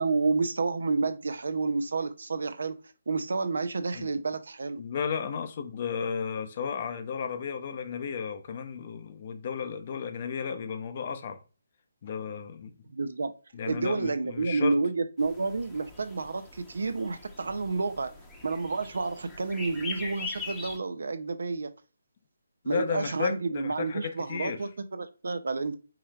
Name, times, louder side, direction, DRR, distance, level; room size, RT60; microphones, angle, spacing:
voice 1, 0.0-2.8 3.1-4.8 12.9-13.3 13.7-18.1 18.4-21.7 22.7-25.8, right 3 dB, 70° right, 0.5 m, -30 dB
voice 2, 4.8-11.4 12.0-12.7 13.5-14.7 22.6-24.6, left 6 dB, 40° left, 0.6 m, -33 dB
sound 1, 15.2-20.8, left 3 dB, 10° left, 0.8 m, -42 dB
4.7 x 3.2 x 2.3 m
figure-of-eight pair, 150°, 0 cm